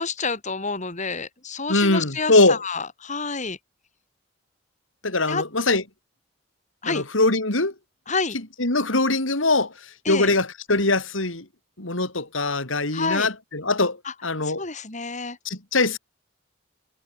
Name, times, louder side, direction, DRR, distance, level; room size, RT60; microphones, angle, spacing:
voice 1, 0.0-3.6 5.3-5.4 6.8-7.1 8.1-8.4 10.1-10.3 12.9-13.3 14.0-14.1 14.4-15.4, left 4 dB, 40° left, 3.9 m, -28 dB
voice 2, 1.7-2.6 5.0-5.8 6.9-7.7 8.6-9.7 10.1-11.4 11.8-14.0 14.2-14.6 15.4-16.0, left 2 dB, 85° left, 4.6 m, -22 dB
head